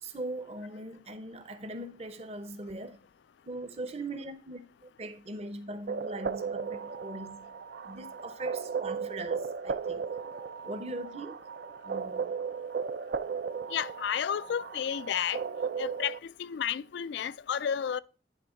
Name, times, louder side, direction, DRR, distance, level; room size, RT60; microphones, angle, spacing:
voice 1, 0.0-3.0 3.5-7.5 7.8-10.1 10.6-11.5 11.8-12.3, right 2 dB, 35° right, 0.7 m, -40 dB
sound 1, 5.9-16.2, right 5 dB, 55° right, 0.4 m, -36 dB
voice 2, 13.7-15.4 15.8-18.0, left 8 dB, 65° left, 0.3 m, -32 dB
10.5 x 3.5 x 5.7 m
head